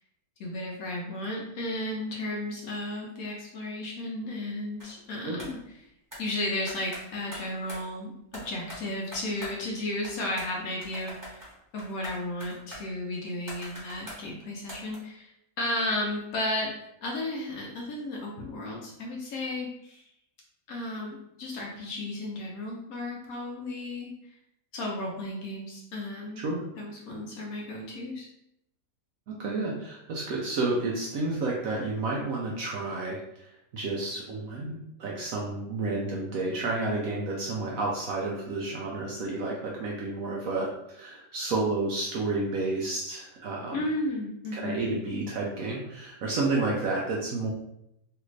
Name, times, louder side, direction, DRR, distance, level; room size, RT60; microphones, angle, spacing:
voice 1, 0.4-5.6 6.2-15.3 15.6-16.8 17.0-20.0 20.7-24.1 24.7-26.4 26.8-28.3 43.7-44.9, left 1 dB, 65° left, -1 dB, 1.0 m, -34 dB
sound 1, 4.8-5.0 5.4-5.6 6.1-6.2 6.7-7.9 8.3-9.8 10.0-10.5 10.8-14.2 14.7-15.0, equal, 15° right, 1.0 m, -43 dB
voice 2, 29.3-43.9 44.5-47.5, right 3 dB, 70° right, -3 dB, 0.8 m, -31 dB
3.3 x 2.4 x 3.1 m, 0.80 s
omnidirectional pair, 1.8 m